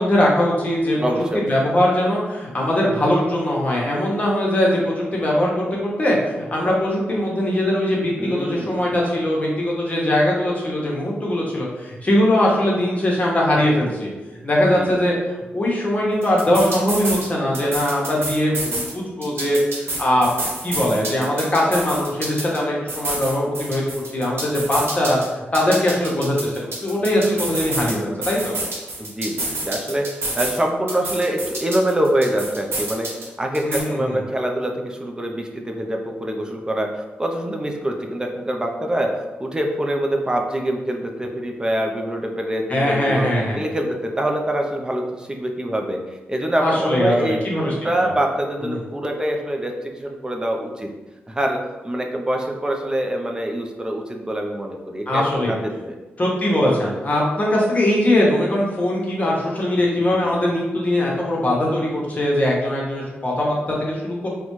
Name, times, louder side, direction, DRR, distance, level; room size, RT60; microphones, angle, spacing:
voice 1, 0.0-14.1 14.4-20.3 20.6-23.8 24.1-25.2 25.5-28.6 33.6-34.1 42.7-43.6 46.6-47.7 48.0-48.1 48.6-48.8 55.1-55.5 56.2-64.3, left 1 dB, 35° left, -4 dB, 1.0 m, -21 dB
voice 2, 1.0-1.5 8.2-8.8 14.8-15.0 29.0-43.3 43.5-50.9 51.3-56.0, right 1 dB, 20° right, 2 dB, 0.5 m, -25 dB
sound 1, 16.2-17.3 17.5-18.9 19.2-22.6 22.9-25.3 25.5-27.9 28.2-30.6 30.9-33.3 33.5-33.8, right 2 dB, 70° right, 1.0 m, -28 dB
3.9 x 2.2 x 3.1 m, 1.1 s
cardioid pair, 85°, 4 cm